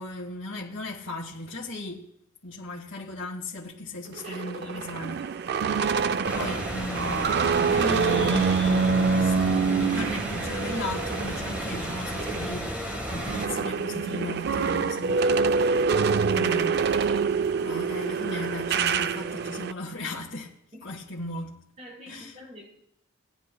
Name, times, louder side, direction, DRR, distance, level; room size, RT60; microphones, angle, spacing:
voice 1, 0.0-2.1 2.4-5.2 6.3-15.8 16.3-16.9 17.6-20.5 20.8-21.6 22.1-22.4, left 2 dB, 60° left, 1.4 m, -36 dB
sound 1, 4.1-12.5 12.9-19.7, right 5 dB, 50° right, 0.3 m, -26 dB
voice 2, 4.2-5.2 20.7-20.9 21.8-22.7, equal, 35° right, 4.5 m, -47 dB
sound 2, 6.3-13.5, equal, 5° right, 1.5 m, -33 dB
19.0 x 10.0 x 2.3 m
head